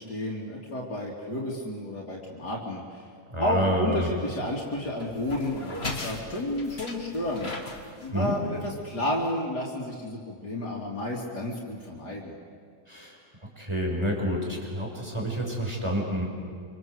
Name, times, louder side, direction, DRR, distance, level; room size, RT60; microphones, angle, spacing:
voice 1, 0.0-3.1 3.4-7.5 8.0-12.3, left 1 dB, 80° left, -3 dB, 3.6 m, -31 dB
voice 2, 3.3-4.1 8.1-8.3 12.9-13.2 13.6-16.3, equal, 15° right, 0 dB, 5.7 m, -28 dB
sound 1, 3.9-9.3, left 2 dB, 40° left, 2.5 m, -40 dB
27.0 x 26.5 x 8.1 m, 2.1 s
omnidirectional pair, 1.7 m